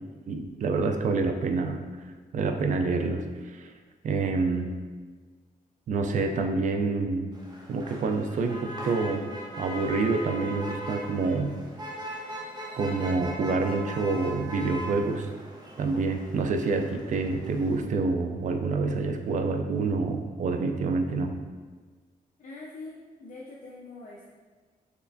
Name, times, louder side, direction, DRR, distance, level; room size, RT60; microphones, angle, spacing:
voice 1, 0.3-1.8 2.3-3.7 4.0-4.7 5.9-7.3 7.7-9.3 9.6-11.6 12.8-15.3 15.8-21.3, right 3 dB, 55° right, 5 dB, 0.4 m, -27 dB
Motor vehicle (road), 7.3-17.8, equal, 25° right, 0.7 m, -39 dB
voice 2, 22.4-22.9 23.2-24.3, left 3 dB, 55° left, -4 dB, 0.5 m, -43 dB
4.3 x 3.2 x 2.6 m, 1.4 s
cardioid pair, 115°, 15 cm